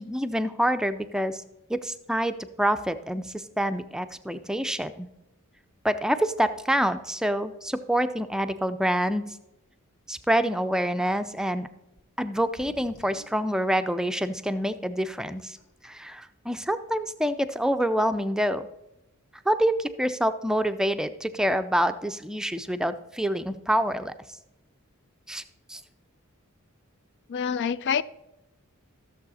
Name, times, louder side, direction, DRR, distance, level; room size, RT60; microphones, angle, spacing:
voice 1, 0.0-1.4 1.7-5.1 5.8-9.2 10.1-11.7 12.2-15.6 15.8-18.6 19.5-24.1 25.3-25.4 25.7-25.8, equal, 5° right, 10 dB, 0.4 m, -26 dB
sound 1, 12.0-12.1 12.4-13.4 14.5-14.6 15.1-15.2 15.4-15.9, right 2 dB, 75° left, 2.9 m, -48 dB
voice 2, 27.3-28.0, left 7 dB, 55° left, 18 dB, 0.4 m, -26 dB
14.5 x 7.0 x 4.1 m, 0.91 s
head